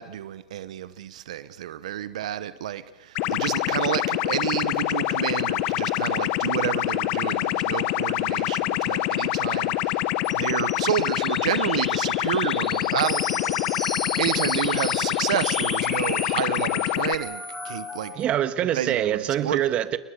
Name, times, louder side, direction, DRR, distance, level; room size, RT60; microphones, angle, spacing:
voice 1, 0.0-10.1 10.3-18.1 18.7-19.6, right 11 dB, 75° right, 0.9 m, -30 dB
sound 1, 3.1-17.1, left 17 dB, 50° left, 1.1 m, -25 dB
sound 2, 10.2-18.2, left 1 dB, 5° left, 6.1 m, -35 dB
voice 2, 18.1-20.0, right 11 dB, 35° right, 1.6 m, -24 dB
29.5 x 21.0 x 6.7 m
hypercardioid pair, 115°, 4 cm